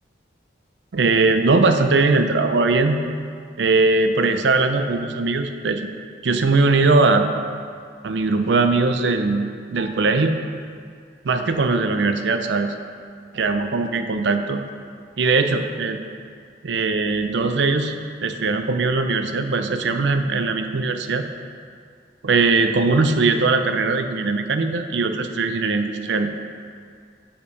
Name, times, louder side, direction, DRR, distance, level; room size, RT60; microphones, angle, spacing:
voice 1, 0.9-3.0 3.6-5.9 6.2-7.3 8.0-10.4 11.2-12.7 13.3-14.6 15.2-16.0 16.6-18.0 18.2-21.3 22.2-26.3, right 3 dB, 80° right, 7 dB, 0.5 m, -20 dB
6.4 x 5.8 x 5.3 m, 2.2 s
head